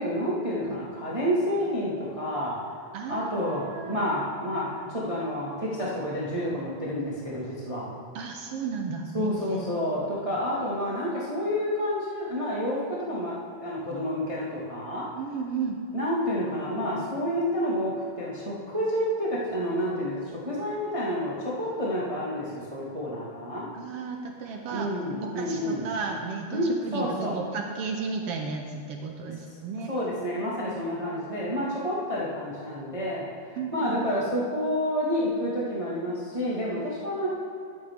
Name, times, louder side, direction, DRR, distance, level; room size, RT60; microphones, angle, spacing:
voice 1, 0.0-7.9 9.1-13.4 13.6-15.0 15.9-23.7 24.7-25.9 26.5-27.3 29.9-37.3, equal, 20° right, -6 dB, 1.0 m, -29 dB
voice 2, 2.9-4.1 8.1-9.6 15.2-15.8 23.7-24.9 25.2-29.9 33.5-34.0, right 5 dB, 70° right, 3 dB, 1.4 m, -34 dB
11.0 x 9.9 x 3.5 m, 2.5 s
omnidirectional pair, 3.3 m